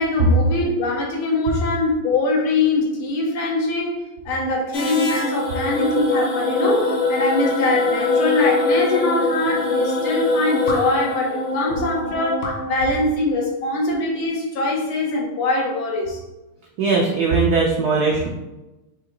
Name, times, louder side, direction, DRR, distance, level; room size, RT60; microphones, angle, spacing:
voice 1, 0.0-16.2, left 2 dB, 85° left, -2 dB, 1.9 m, -23 dB
sound 1, 4.7-13.1, left 2 dB, 60° left, 1.3 m, -23 dB
voice 2, 16.8-18.3, right 4 dB, 85° right, -1 dB, 0.8 m, -19 dB
4.9 x 2.7 x 3.7 m, 1.0 s
omnidirectional pair, 2.3 m